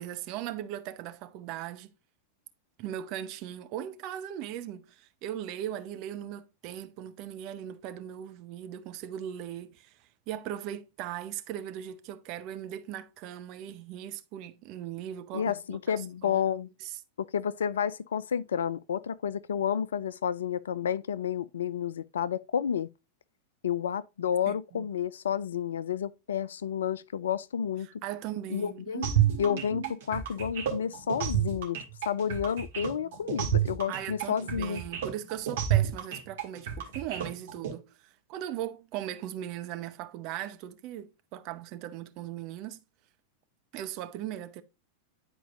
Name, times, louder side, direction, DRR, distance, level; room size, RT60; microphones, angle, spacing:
voice 1, 0.0-1.9 2.8-9.9 10.3-15.9 16.2-16.4 24.5-24.9 27.8-30.0 33.9-42.8 43.7-44.6, right 11 dB, 40° right, 0.8 m, -39 dB
voice 2, 15.3-16.7 17.2-22.9 23.6-27.9 28.5-29.1 29.4-31.8 32.1-34.8, left 8 dB, 65° left, 0.3 m, -30 dB
sound 1, 29.0-37.7, right 10 dB, 60° right, 1.9 m, -29 dB
10.0 x 4.5 x 2.4 m
figure-of-eight pair, 90°, 0 cm